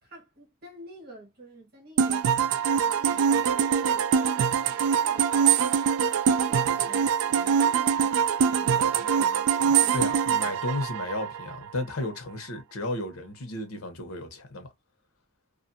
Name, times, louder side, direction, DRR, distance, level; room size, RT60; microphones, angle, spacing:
voice 1, 0.0-10.6, right 1 dB, 45° right, 1.5 m, -49 dB
sound 1, 2.0-11.7, right 7 dB, 85° right, 0.3 m, -24 dB
voice 2, 9.6-14.7, left 1 dB, 85° left, 0.9 m, -33 dB
2.6 x 2.5 x 2.6 m
head